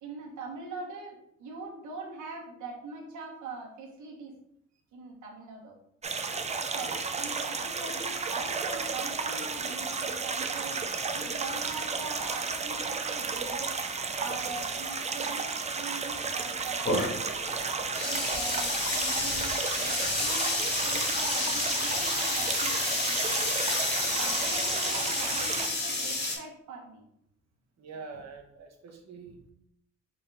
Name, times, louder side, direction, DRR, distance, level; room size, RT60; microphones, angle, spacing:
voice 1, 0.0-4.3 4.9-5.7 6.7-10.9 11.1-13.8 14.2-15.5 15.7-16.9 18.0-20.5 20.8-23.4 24.0-27.0, right 3 dB, 75° right, -1 dB, 1.4 m, -42 dB
sound 1, 6.0-25.7, right 4 dB, 25° right, 0.5 m, -33 dB
sound 2, 16.9-26.4, left 2 dB, 35° left, 1.8 m, -30 dB
voice 2, 27.8-29.5, right 4 dB, 60° right, 3 dB, 1.1 m, -45 dB
4.0 x 3.7 x 3.4 m, 0.70 s
cardioid pair, 90°, 30 cm